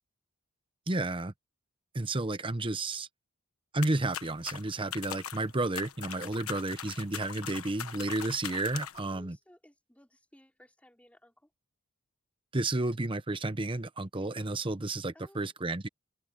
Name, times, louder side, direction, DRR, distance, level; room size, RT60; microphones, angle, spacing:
voice 1, 0.9-1.3 1.9-3.1 3.7-9.4 12.5-15.9, right 2 dB, 25° right, 0.9 m, -32 dB
sound 1, 3.8-9.1, left 9 dB, 90° left, 1.2 m, -41 dB
voice 2, 8.9-11.5 15.1-15.5, equal, 5° left, 4.0 m, -59 dB
open air
head